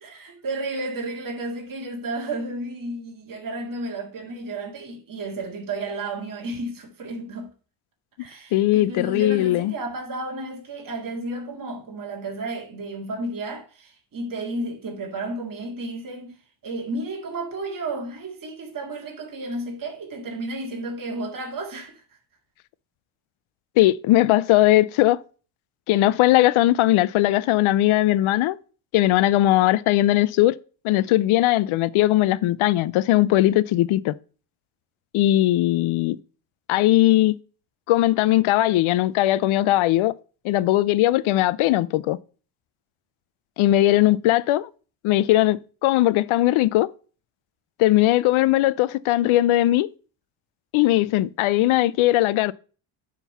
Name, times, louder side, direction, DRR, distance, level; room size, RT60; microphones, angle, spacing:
voice 1, 0.0-7.5 8.2-22.0, right 2 dB, 40° right, 2.1 m, -32 dB
voice 2, 8.5-9.7 23.8-25.2 25.9-28.6 28.9-30.5 30.8-34.1 35.1-36.2 36.7-37.4 37.9-40.1 40.4-42.2 43.6-44.7 45.0-46.9 47.8-49.9 50.7-52.5, left 15 dB, 75° left, 0.6 m, -19 dB
9.3 x 3.9 x 5.6 m
cardioid pair, 95°, 49 cm